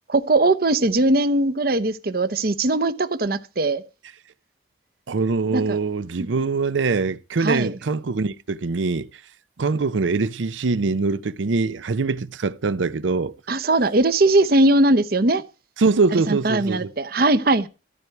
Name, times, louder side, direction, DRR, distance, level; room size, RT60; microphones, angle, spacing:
voice 1, 0.1-3.8 5.5-5.8 7.4-7.8 13.5-15.4 16.3-17.7, right 2 dB, 50° right, 0.8 m, -20 dB
voice 2, 5.1-9.2 9.6-13.3 15.8-16.9, right 4 dB, 85° right, 0.6 m, -23 dB
14.0 x 4.7 x 9.0 m
head